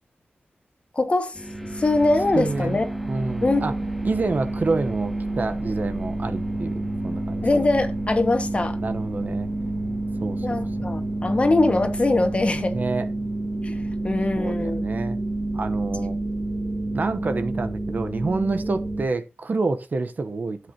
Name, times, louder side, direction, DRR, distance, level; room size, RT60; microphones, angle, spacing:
voice 1, 0.9-1.4 1.7-2.9 3.4-3.6 7.4-8.8 10.4-12.8 13.6-14.9, left 2 dB, 30° left, 1.7 m, -22 dB
sound 1, 1.3-19.1, right 2 dB, ahead, 1.7 m, -29 dB
voice 2, 2.3-2.8 3.1-3.7 4.0-7.4 8.8-9.5 10.2-10.6 12.7-13.1 14.3-15.2 15.5-16.2 16.9-20.6, right 3 dB, 50° right, 1.0 m, -28 dB
14.0 x 8.1 x 2.9 m
wide cardioid pair, 140°, 4 cm